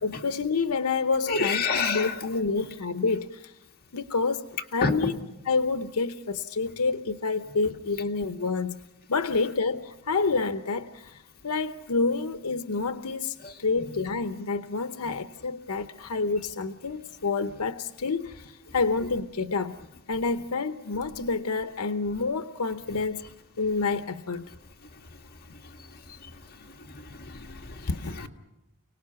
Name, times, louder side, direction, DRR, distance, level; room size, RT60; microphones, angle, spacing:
voice 1, 0.0-3.5 3.9-4.4 4.7-5.2 5.5-8.8 9.1-19.8 20.1-23.2 23.6-24.5 27.9-28.3, left 4 dB, 85° left, 0.8 m, -28 dB
voice 2, 1.3-2.1 4.8-5.1 13.4-13.5 26.2-26.3 27.1-28.3, left 4 dB, 45° left, 2.0 m, -29 dB
30.0 x 19.0 x 5.8 m
head